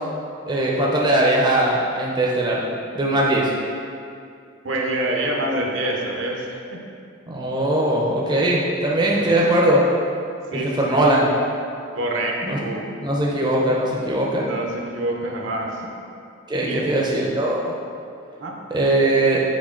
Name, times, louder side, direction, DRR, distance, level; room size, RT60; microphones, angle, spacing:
voice 1, 0.5-2.6 2.9-3.5 7.3-9.8 10.5-11.2 12.5-12.6 13.0-14.4 16.5-17.7 18.7-19.4, right 1 dB, 20° right, -4 dB, 0.6 m, -20 dB
voice 2, 4.6-6.8 9.1-9.4 10.5-11.0 11.9-12.8 14.3-15.8 16.6-16.9 18.4-18.5, right 1 dB, 65° right, -1 dB, 0.8 m, -26 dB
7.5 x 3.7 x 3.7 m, 2.5 s
head